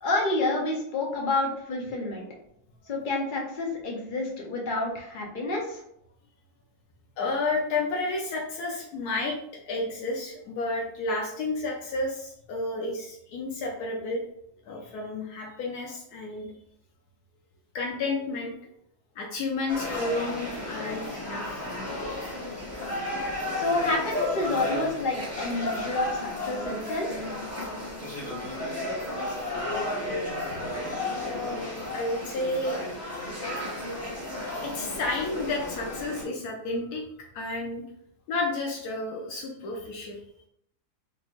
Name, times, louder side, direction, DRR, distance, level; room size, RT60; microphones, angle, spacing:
voice 1, 0.0-2.2 2.9-5.8 23.6-27.3, left 2 dB, 50° left, -1 dB, 0.6 m, -29 dB
voice 2, 7.2-9.4 9.7-14.2 14.7-16.5 17.7-18.5 19.2-21.7 30.4-30.6 31.1-31.6 31.9-32.8 33.4-33.8 34.6-37.0 37.3-37.8 38.3-40.2, left 2 dB, 80° left, 0 dB, 1.1 m, -31 dB
sound 1, 19.7-36.2, left 1 dB, 10° left, 0.8 m, -33 dB
3.6 x 3.0 x 2.4 m, 0.74 s
omnidirectional pair, 1.7 m